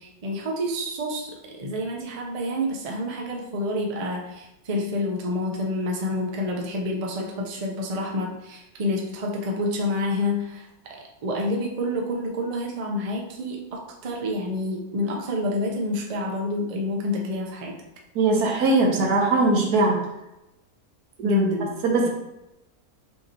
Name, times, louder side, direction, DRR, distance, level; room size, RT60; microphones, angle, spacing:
voice 1, 0.0-10.7 11.2-17.7 21.2-21.7, left 1 dB, 45° right, 0 dB, 0.4 m, -28 dB
voice 2, 18.1-20.0 21.2-21.4 21.8-22.1, right 2 dB, 80° right, 0 dB, 1.4 m, -20 dB
5.5 x 2.8 x 2.8 m, 0.92 s
omnidirectional pair, 1.6 m